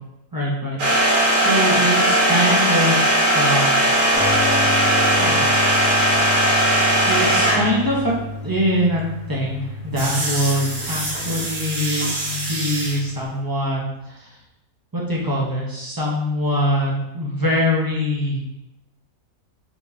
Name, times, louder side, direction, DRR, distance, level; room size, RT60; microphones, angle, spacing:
voice 1, 0.3-0.8 1.4-3.0 3.3-3.9 5.2-5.4 7.1-8.1 8.4-9.0 9.3-13.8 14.1-14.3 14.9-18.4, equal, 20° right, -5 dB, 0.6 m, -23 dB
sound 1, 0.8-7.8 10.0-13.0, right 1 dB, 85° right, 1.8 m, -19 dB
sound 2, 4.1-13.3, left 3 dB, 45° left, 1.1 m, -31 dB
4.5 x 3.5 x 2.8 m, 0.90 s
omnidirectional pair, 1.6 m